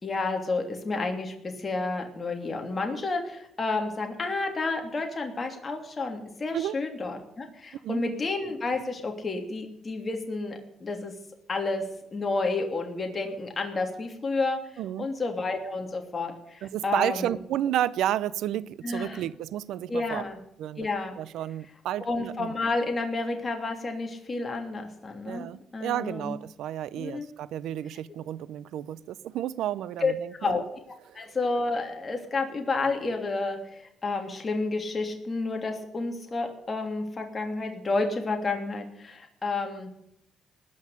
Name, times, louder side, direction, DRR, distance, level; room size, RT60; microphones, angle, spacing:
voice 1, 0.0-11.1 11.5-11.8 12.1-14.6 15.0-17.3 18.8-19.2 19.9-20.4 20.8-21.2 22.0-26.3 26.9-27.3 30.0-30.1 30.4-30.6 31.1-39.9, left 3 dB, 30° left, 3.0 m, -30 dB
voice 2, 14.8-15.1 16.6-20.2 20.6-20.9 21.2-22.5 25.3-30.6 31.1-31.4, right 11 dB, 85° right, 0.6 m, -31 dB
19.5 x 6.5 x 10.0 m
cardioid pair, 90°, 0 cm